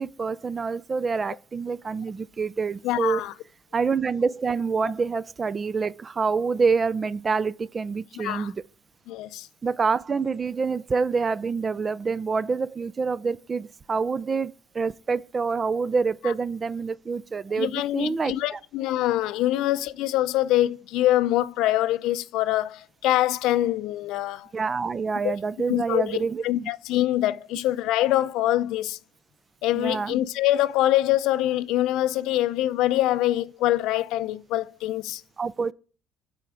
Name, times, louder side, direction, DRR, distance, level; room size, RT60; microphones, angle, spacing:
voice 1, 0.0-3.2 3.7-8.6 9.6-18.6 24.5-26.7 29.7-30.2 35.4-35.7, right 5 dB, 25° right, 0.3 m, -27 dB
voice 2, 2.8-3.3 8.2-8.5 9.1-9.5 16.2-16.3 17.6-24.5 25.2-25.3 25.7-29.0 29.6-35.2, left 14 dB, 75° left, 0.5 m, -24 dB
6.9 x 4.5 x 4.9 m
cardioid pair, 120°, 0 cm